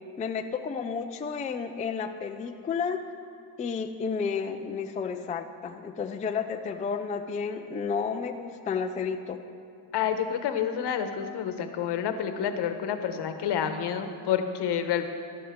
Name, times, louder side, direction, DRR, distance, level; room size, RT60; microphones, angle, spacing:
voice 1, 0.2-3.0 3.6-9.4, left 5 dB, 20° left, 6 dB, 0.3 m, -31 dB
voice 2, 9.9-15.1, left 8 dB, 65° left, 8 dB, 1.0 m, -29 dB
14.5 x 12.0 x 3.6 m, 2.4 s
cardioid pair, 145°, 44 cm